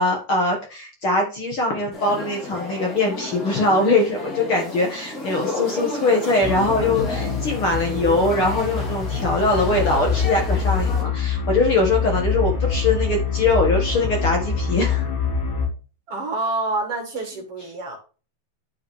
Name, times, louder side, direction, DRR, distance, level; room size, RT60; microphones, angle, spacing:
voice 1, 0.0-15.1, left 2 dB, 45° left, 1 dB, 2.1 m, -22 dB
Cafe noise, 1.9-11.0, left 2 dB, 25° left, 3.3 m, -33 dB
sound 1, 6.4-15.7, left 5 dB, 75° left, 5.0 m, -25 dB
voice 2, 16.1-18.0, right 2 dB, 50° right, 2 dB, 2.5 m, -27 dB
10.0 x 5.7 x 3.3 m, 0.35 s
omnidirectional pair, 3.9 m